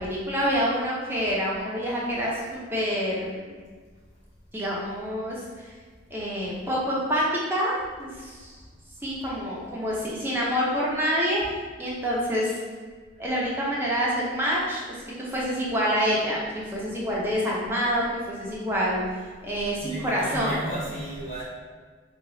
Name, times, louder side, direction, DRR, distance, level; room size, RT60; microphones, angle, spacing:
voice 1, 0.0-3.6 4.5-5.7 6.1-7.2 7.5-8.6 9.0-11.4 11.8-12.6 13.2-19.0 19.4-20.6, equal, 10° right, -6 dB, 0.6 m, -27 dB
voice 2, 19.8-21.4, right 1 dB, 35° left, -8 dB, 0.8 m, -33 dB
2.9 x 2.3 x 3.8 m, 1.5 s
head